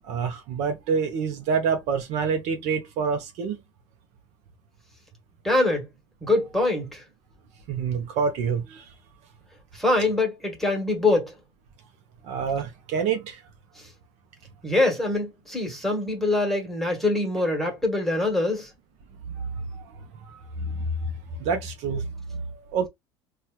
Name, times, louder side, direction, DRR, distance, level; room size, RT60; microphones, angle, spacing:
voice 1, 0.1-3.6 7.7-8.9 12.2-13.4 19.4-19.8 20.2-21.1 21.4-22.4 22.7-22.9, right 5 dB, 60° right, 0.8 m, -27 dB
voice 2, 5.4-5.9 6.2-7.0 9.7-11.3 14.6-18.7, left 2 dB, ahead, 1.4 m, -24 dB
4.2 x 2.4 x 2.3 m
supercardioid pair, 100°, 13 cm